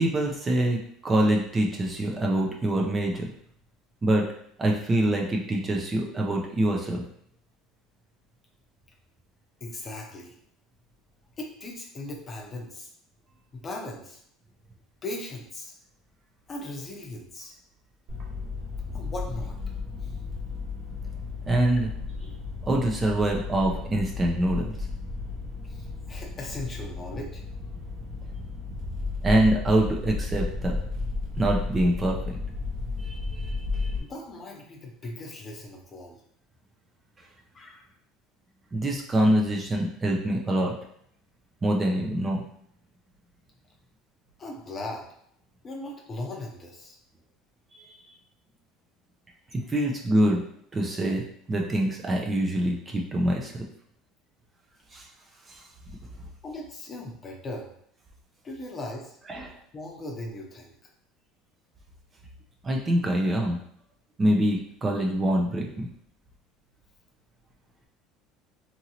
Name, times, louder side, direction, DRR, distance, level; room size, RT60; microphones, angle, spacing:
voice 1, 0.0-3.3 4.0-4.3 4.6-7.0 21.5-21.9 22.6-24.7 29.2-30.7 31.4-32.4 33.0-34.0 38.7-40.8 41.6-42.4 47.7-47.9 49.5-50.4 50.7-53.5 54.9-55.1 55.5-55.6 59.3-59.5 62.6-63.6 64.2-65.9, right 1 dB, 20° right, -1 dB, 0.4 m, -25 dB
voice 2, 9.6-10.3 11.4-12.9 13.5-14.2 15.0-15.7 16.5-17.5 18.9-19.6 20.0-20.1 21.7-21.8 25.7-27.4 34.0-36.2 37.5-37.8 44.4-45.1 45.6-47.0 49.7-49.8 56.4-57.7 58.4-59.5 59.7-60.7, left 2 dB, 25° left, 0 dB, 0.6 m, -38 dB
sound 1, 18.1-34.0, left 3 dB, 45° right, 0.8 m, -33 dB
2.8 x 2.6 x 2.8 m, 0.67 s
cardioid pair, 135°, 0 cm